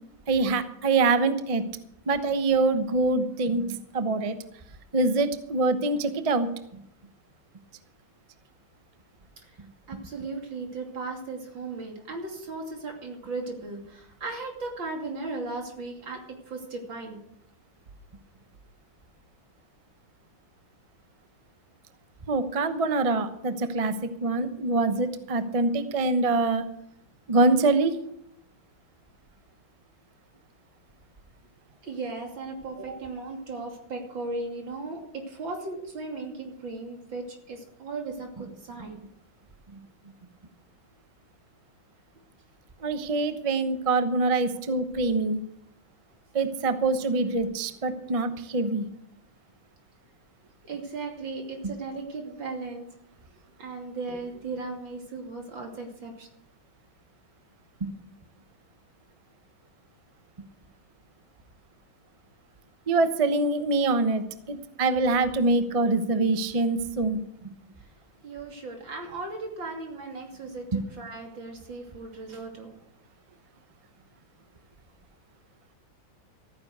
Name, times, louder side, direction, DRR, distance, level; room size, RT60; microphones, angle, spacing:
voice 1, 0.3-1.6 2.1-4.4 4.9-6.5 22.3-26.7 27.3-28.0 42.8-45.4 46.3-48.8 57.8-57.9 62.9-67.5 70.7-70.8, right 3 dB, 30° right, 10 dB, 0.6 m, -25 dB
voice 2, 9.9-17.2 31.8-39.0 50.7-52.9 53.6-56.3 68.2-72.8, right 3 dB, 70° right, 2 dB, 3.5 m, -36 dB
14.5 x 9.7 x 6.6 m, 0.73 s
omnidirectional pair, 2.1 m